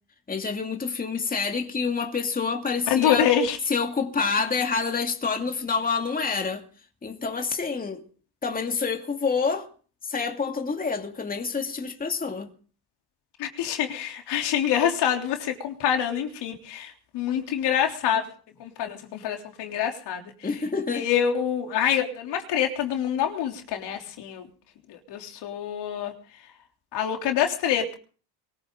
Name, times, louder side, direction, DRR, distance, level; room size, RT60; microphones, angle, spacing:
voice 1, 0.3-3.3 3.7-6.6 7.0-8.0 8.4-9.7 10.0-12.5 20.4-21.1, left 5 dB, 20° left, 2.5 m, -27 dB
voice 2, 2.9-3.6 13.4-18.2 18.6-20.5 20.9-24.5 24.9-26.1 26.9-27.9, left 9 dB, 65° left, 3.4 m, -26 dB
23.0 x 15.5 x 3.9 m
supercardioid pair, 95°, 43 cm